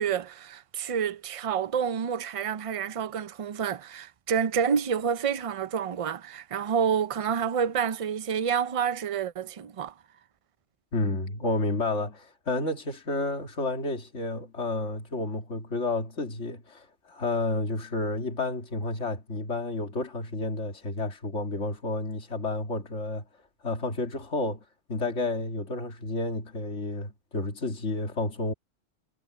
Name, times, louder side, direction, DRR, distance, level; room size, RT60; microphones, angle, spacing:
voice 1, 0.0-9.9, right 7 dB, 60° right, 0.3 m, -28 dB
voice 2, 10.9-23.2 23.6-24.6 24.9-28.5, left 2 dB, 65° left, 2.7 m, -31 dB
omnidirectional pair, 1.3 m